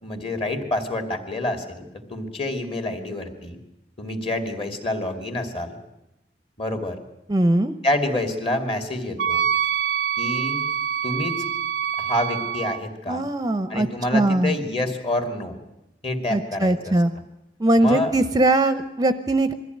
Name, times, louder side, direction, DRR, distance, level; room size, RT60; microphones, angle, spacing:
voice 1, 0.0-1.8 2.1-3.6 4.0-5.8 6.6-7.0 7.8-9.5 10.2-10.6 11.0-11.4 12.0-13.2 13.7-15.6 16.0-17.0 17.8-18.1, left 1 dB, 35° left, 5 dB, 2.8 m, -27 dB
voice 2, 7.3-7.7 13.1-13.9 14.1-14.5 16.3-17.1 17.6-19.5, right 1 dB, 20° right, 10 dB, 0.8 m, -20 dB
Wind instrument woodwind instrument, 9.2-12.8, right 8 dB, 75° right, 0.7 m, -25 dB
22.5 x 14.5 x 9.4 m, 0.90 s
head